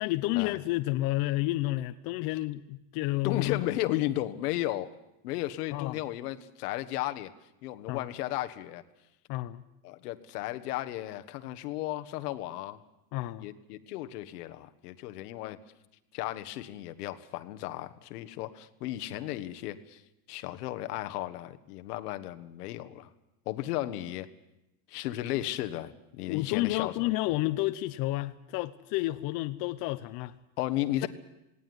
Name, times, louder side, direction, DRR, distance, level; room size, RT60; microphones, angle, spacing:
voice 1, 0.0-3.6 5.7-6.0 7.9-8.0 9.3-9.6 13.1-13.5 26.3-30.4, left 18 dB, 55° left, 0.8 m, -30 dB
voice 2, 3.2-4.9 5.2-7.3 7.6-8.8 9.8-12.8 13.4-15.6 16.1-20.0 20.3-23.1 23.4-24.3 24.9-27.1 30.6-31.1, left 15 dB, 90° left, 1.5 m, -34 dB
19.0 x 18.0 x 9.7 m
supercardioid pair, 145°, 45 cm